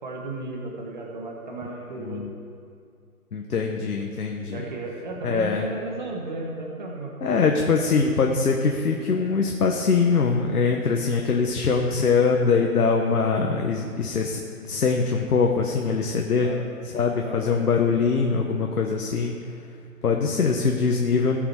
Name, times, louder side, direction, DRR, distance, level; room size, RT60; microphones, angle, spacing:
voice 1, 0.0-2.2 4.5-7.4 16.4-16.6 17.2-17.5, right 2 dB, 30° right, 0 dB, 1.3 m, -34 dB
voice 2, 2.0-2.3 3.3-4.6 5.2-5.6 7.2-14.4 14.6-16.5 16.9-19.3 20.0-21.4, left 5 dB, 75° left, 2 dB, 1.2 m, -23 dB
18.0 x 6.1 x 4.8 m, 2.3 s
hypercardioid pair, 175°, 45 cm